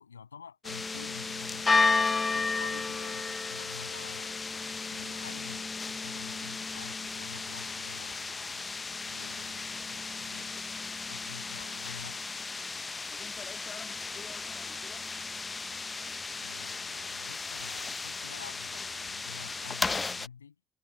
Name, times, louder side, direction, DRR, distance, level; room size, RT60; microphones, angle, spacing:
voice 1, 0.0-4.4 4.7-8.7 9.0-10.7 11.1-12.2 16.4-20.6, left 6 dB, 90° left, 7.5 m, -49 dB
sound 1, 0.6-20.3, left 4 dB, 30° left, 0.7 m, -34 dB
voice 2, 13.1-15.1, left 7 dB, 50° left, 2.6 m, -49 dB
figure-of-eight pair, 45°, 0 cm